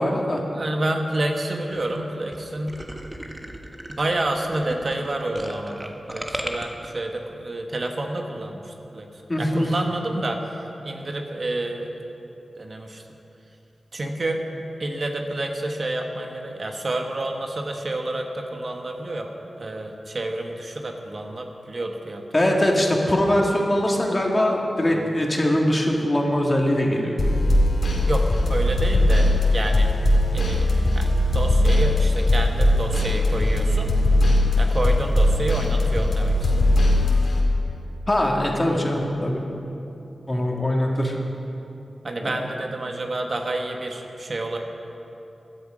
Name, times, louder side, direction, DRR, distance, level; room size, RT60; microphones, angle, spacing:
voice 1, 0.0-0.4 9.3-9.7 22.3-27.1 38.1-39.4 40.3-41.1 42.2-42.3, left 1 dB, 30° left, 0 dB, 2.3 m, -22 dB
voice 2, 0.5-2.8 3.9-9.1 9.4-11.9 12.6-13.0 13.9-14.4 14.8-19.3 19.6-22.6 23.0-23.1 24.9-25.0 28.0-29.9 30.3-30.7 30.9-33.9 34.6-36.7 40.3-40.5 42.0-44.6, right 2 dB, 55° right, 3 dB, 1.4 m, -29 dB
sound 1, 1.7-2.0 2.3-2.4 2.7-6.9, right 1 dB, 25° right, 1.4 m, -34 dB
sound 2, 27.2-37.4, left 1 dB, 70° left, 2.3 m, -19 dB
15.5 x 11.0 x 5.1 m, 2.9 s
cardioid pair, 40°, 0 cm